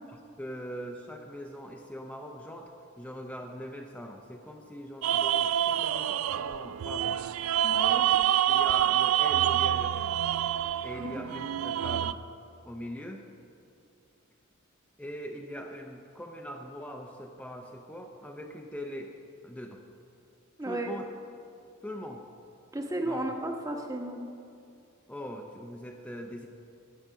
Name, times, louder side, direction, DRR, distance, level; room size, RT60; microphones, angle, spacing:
voice 1, 0.4-7.2 8.5-10.2 10.8-12.2 12.6-13.2 15.0-19.1 19.4-19.8 20.7-21.0 21.8-22.2 23.0-23.2 25.1-26.5, equal, 5° left, 2 dB, 0.6 m, -41 dB
sound 1, 5.0-12.1, right 11 dB, 80° right, 0.3 m, -27 dB
voice 2, 7.6-8.1 11.0-11.3 20.6-20.9 22.7-24.2, right 1 dB, 15° right, 2 dB, 1.1 m, -34 dB
12.0 x 8.7 x 6.2 m, 2.5 s
head